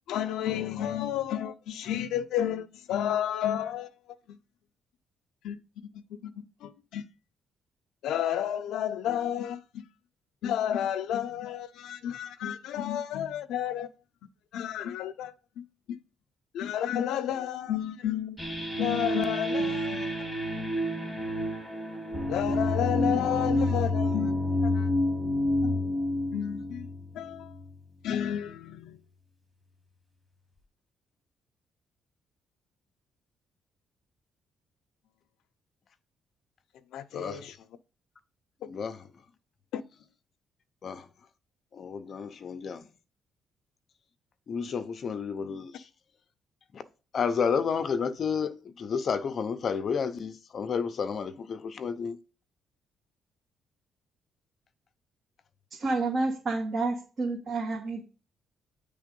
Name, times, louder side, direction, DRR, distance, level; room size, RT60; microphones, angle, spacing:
voice 1, 0.1-3.9 4.3-4.4 5.4-5.6 5.9-6.3 6.6-7.1 8.0-9.8 10.4-13.9 14.5-16.0 16.5-18.4 18.8-20.3 22.3-24.3 24.6-24.9 25.6-25.7 26.3-26.9 27.1-27.6 28.0-29.0 36.9-37.5 38.6-38.7 39.7-39.8, left 10 dB, 90° left, 0.6 m, -31 dB
sound 1, 18.4-27.7, left 1 dB, ahead, 2.3 m, -29 dB
voice 2, 37.1-37.4 38.7-39.1 40.8-41.1 41.7-42.9 44.5-45.9 46.7-46.8 47.1-52.2, left 6 dB, 40° left, 0.6 m, -31 dB
voice 3, 55.7-58.0, right 3 dB, 40° right, 1.7 m, -29 dB
9.3 x 3.5 x 5.2 m
cardioid pair, 160°, 0 cm